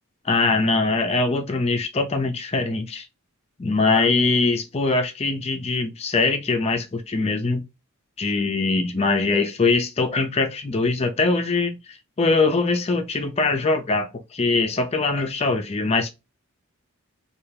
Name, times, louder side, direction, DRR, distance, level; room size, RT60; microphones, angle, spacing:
voice 1, 0.3-3.0 3.6-7.6 8.2-16.1, left 3 dB, 30° left, 0.4 m, -22 dB
3.3 x 2.3 x 3.3 m
head